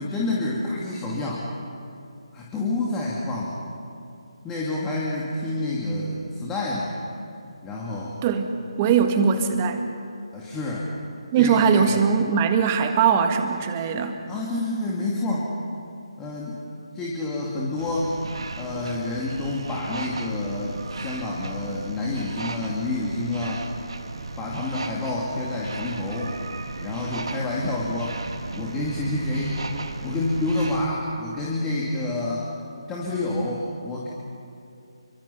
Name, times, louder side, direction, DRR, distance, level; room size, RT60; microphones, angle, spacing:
voice 1, 0.0-1.5 2.3-3.6 4.4-6.9 7.6-8.2 10.3-10.9 11.3-12.0 14.3-15.6 16.2-16.6 16.9-18.2 18.6-23.6 24.4-26.3 26.8-28.2 28.5-29.6 30.0-32.4 32.9-34.1, left 2 dB, 10° left, -5 dB, 2.5 m, -28 dB
voice 2, 8.8-9.8 11.3-14.2, right 6 dB, 25° right, 6 dB, 1.7 m, -20 dB
sound 1, 17.8-30.9, right 3 dB, 60° right, 2.0 m, -35 dB
29.0 x 25.0 x 5.9 m, 2.6 s
figure-of-eight pair, 150°, 3 cm